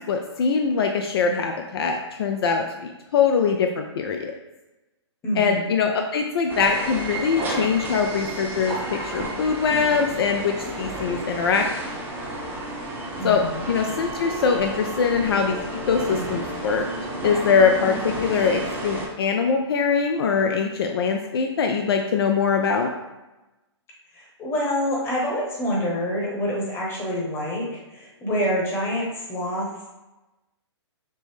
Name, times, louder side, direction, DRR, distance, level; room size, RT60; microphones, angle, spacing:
voice 1, 0.0-4.3 5.4-8.8 9.0-11.7 13.2-13.4 13.7-16.8 17.2-22.9, left 5 dB, 55° left, 4 dB, 0.4 m, -22 dB
voice 2, 5.2-5.7 13.2-13.6 24.1-29.9, equal, 15° left, -3 dB, 1.0 m, -27 dB
sound 1, 6.4-13.8, right 5 dB, 55° right, 0.6 m, -41 dB
sound 2, 6.5-19.1, right 1 dB, 15° right, 0.7 m, -32 dB
5.2 x 2.0 x 3.2 m, 1.0 s
hypercardioid pair, 135°, 15 cm